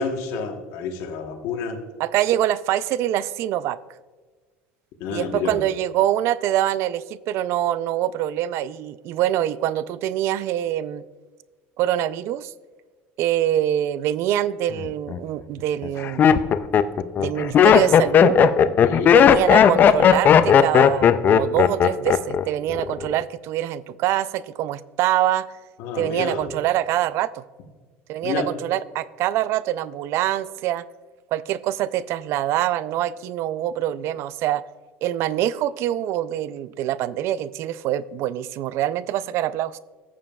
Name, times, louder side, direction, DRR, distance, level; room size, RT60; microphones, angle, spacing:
voice 1, 0.0-1.8 5.0-5.6 18.8-19.1 25.8-26.5 28.2-28.5, left 5 dB, 70° left, 3 dB, 1.1 m, -29 dB
voice 2, 2.0-3.8 5.1-11.0 11.8-12.5 13.2-16.3 17.2-18.4 19.1-25.5 26.0-27.4 28.1-30.8 31.3-34.6 35.0-39.8, right 12 dB, 60° right, 17 dB, 0.3 m, -24 dB
Laughter, 14.8-15.2 15.8-22.4 22.7-23.2, left 8 dB, 35° left, 0.4 m, -15 dB
14.0 x 7.3 x 2.3 m, 1.4 s
cardioid pair, 125°, 5 cm